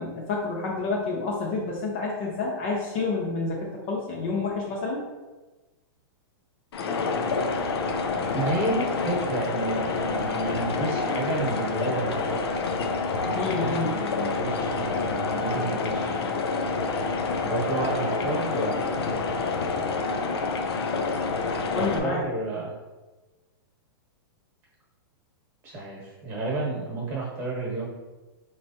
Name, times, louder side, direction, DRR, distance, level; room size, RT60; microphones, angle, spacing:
voice 1, 0.0-5.0 13.3-13.9 21.7-22.2, left 3 dB, 25° left, -2 dB, 0.5 m, -29 dB
sound 1, 6.7-22.0, left 4 dB, 85° left, 0.6 m, -28 dB
voice 2, 8.3-12.4 13.2-16.4 17.4-19.1 21.7-22.7 25.6-27.9, right 2 dB, 20° right, -4 dB, 1.1 m, -31 dB
4.5 x 3.2 x 2.7 m, 1.2 s
supercardioid pair, 180°, 13 cm